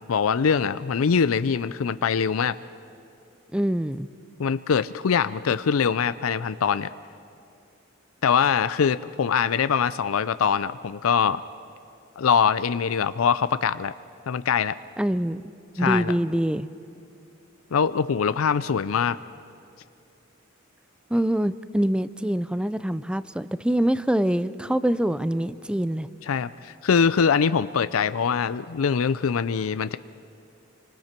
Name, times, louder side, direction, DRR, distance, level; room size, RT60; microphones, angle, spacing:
voice 1, 0.0-2.5 4.4-6.9 8.2-11.4 12.2-13.9 14.3-14.8 15.8-16.1 17.7-19.2 26.2-30.0, left 6 dB, 80° left, 14 dB, 0.5 m, -23 dB
voice 2, 3.5-4.1 15.0-15.4 15.8-16.7 21.1-26.1, right 1 dB, 5° right, 15 dB, 0.4 m, -24 dB
29.5 x 25.5 x 4.5 m, 2.6 s
head